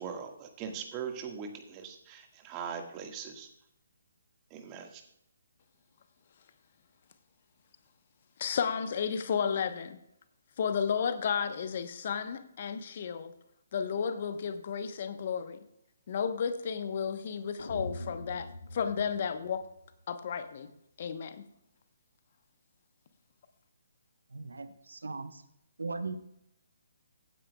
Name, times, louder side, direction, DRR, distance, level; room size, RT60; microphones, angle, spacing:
voice 1, 0.0-3.5 4.5-5.0, right 7 dB, 25° right, 4 dB, 1.6 m, -40 dB
voice 2, 8.4-10.0 10.6-13.3 13.7-15.6 16.1-19.6 20.1-20.7 21.0-21.5, left 7 dB, 45° left, 10 dB, 1.0 m, -33 dB
sound 1, 17.6-19.9, left 1 dB, 70° left, 1.3 m, -43 dB
voice 3, 24.3-25.4 25.8-26.2, right 3 dB, 75° right, 10 dB, 0.9 m, -38 dB
16.0 x 9.4 x 2.3 m, 0.77 s
figure-of-eight pair, 140°, 0 cm